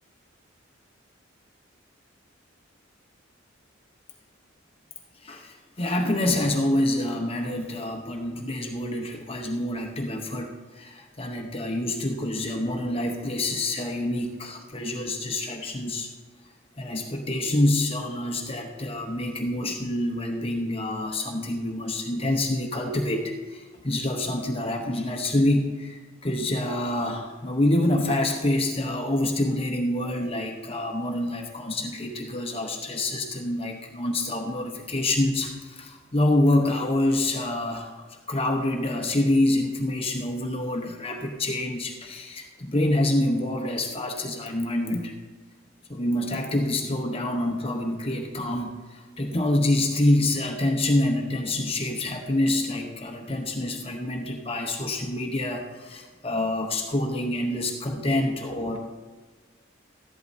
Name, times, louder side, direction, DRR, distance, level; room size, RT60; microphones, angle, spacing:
voice 1, 5.2-16.1 16.8-45.1 45.9-58.8, left 1 dB, 30° left, 2 dB, 0.9 m, -26 dB
14.0 x 11.5 x 2.7 m, 1.4 s
head